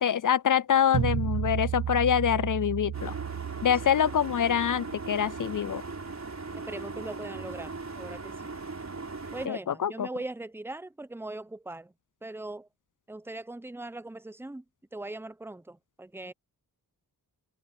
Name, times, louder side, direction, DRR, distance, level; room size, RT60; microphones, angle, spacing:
voice 1, 0.0-3.1 3.6-5.8 9.5-10.1, left 9 dB, 50° left, 0.5 m, -25 dB
sound 1, 0.9-6.0, right 10 dB, 70° right, 0.9 m, -33 dB
sound 2, 2.9-9.5, right 3 dB, 40° right, 4.3 m, -39 dB
voice 2, 6.5-8.5 9.3-11.9 12.2-12.7 13.1-14.6 14.9-16.3, right 2 dB, 5° right, 0.7 m, -40 dB
cardioid pair, 55°, 40 cm